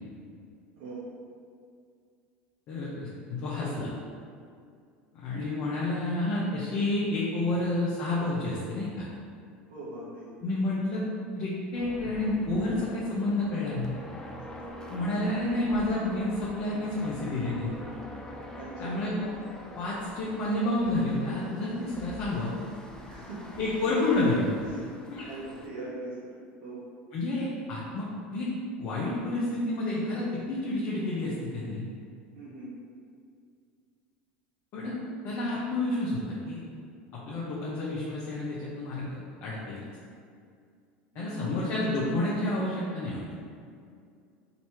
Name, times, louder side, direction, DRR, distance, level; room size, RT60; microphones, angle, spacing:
voice 1, 2.7-3.9 5.1-9.1 10.4-11.0 11.3-13.9 14.9-17.7 18.8-19.3 19.8-22.5 23.6-24.6 25.1-25.3 27.1-28.5 28.8-31.9 34.7-34.9 35.2-36.6 37.1-39.8 41.1-43.4, left 2 dB, 50° left, -7 dB, 0.9 m, -30 dB
voice 2, 9.7-10.3 16.8-16.9 18.6-18.9 23.0-23.5 24.7-24.9 25.3-26.3 26.6-26.8 32.3-32.7 41.1-41.3, right 2 dB, 80° right, -8 dB, 1.2 m, -41 dB
sound 1, 11.7-25.7, left 1 dB, 10° left, 0.6 m, -45 dB
4.1 x 2.9 x 4.5 m, 2.3 s
hypercardioid pair, 95°, 6 cm